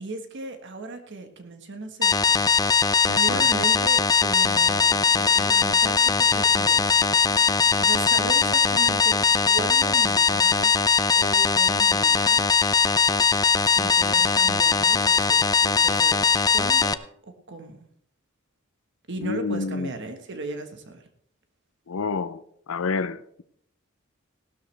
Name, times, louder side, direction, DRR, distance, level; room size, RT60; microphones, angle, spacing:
voice 1, 0.0-7.0 7.8-10.7 11.1-12.4 13.6-16.2 16.5-17.0 17.2-17.9 19.1-21.0, right 3 dB, 60° right, 1.5 m, -37 dB
sound 1, 2.0-16.9, left 5 dB, 20° left, 0.4 m, -20 dB
voice 2, 3.1-3.5 19.2-19.9 21.9-23.4, left 4 dB, 80° left, 0.6 m, -29 dB
sound 2, 4.4-9.4, left 2 dB, 65° left, 1.2 m, -48 dB
16.5 x 12.5 x 3.4 m
head